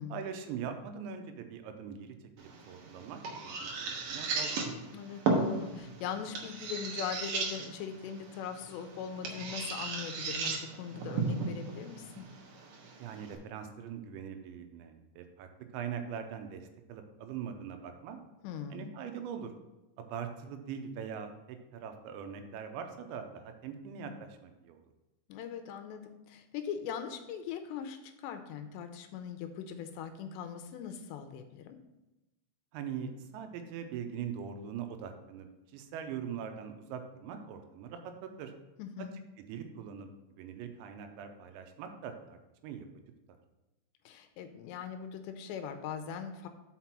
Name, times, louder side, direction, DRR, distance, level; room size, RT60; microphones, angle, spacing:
voice 1, 0.1-4.8 13.0-18.2 18.7-19.5 20.0-24.8 32.7-35.5 35.7-38.5 39.5-40.1 40.4-42.4 42.6-42.9, right 7 dB, 85° right, 6 dB, 3.0 m, -42 dB
sound 1, 2.4-13.3, right 3 dB, 65° right, 2.2 m, -36 dB
voice 2, 4.9-12.3 18.4-18.9 25.3-31.7 38.8-39.2 44.1-46.5, left 7 dB, 80° left, 7 dB, 2.7 m, -40 dB
5.9 x 5.8 x 5.9 m, 0.98 s
omnidirectional pair, 5.2 m